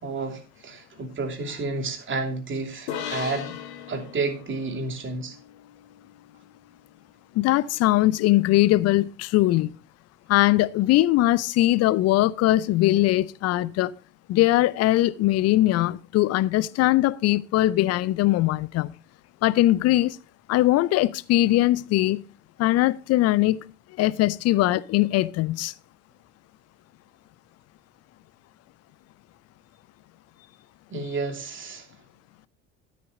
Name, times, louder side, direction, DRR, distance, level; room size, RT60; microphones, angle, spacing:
voice 1, 0.0-3.5 3.9-5.4 30.9-31.9, right 3 dB, 30° right, 2.9 m, -31 dB
sound 1, 2.9-6.4, left 9 dB, 65° left, 1.9 m, -38 dB
voice 2, 7.3-9.8 10.3-13.9 14.3-18.9 19.4-20.2 20.5-22.2 22.6-23.6 24.0-25.7, left 16 dB, 45° left, 0.6 m, -21 dB
13.0 x 8.5 x 4.0 m
figure-of-eight pair, 60°, 37 cm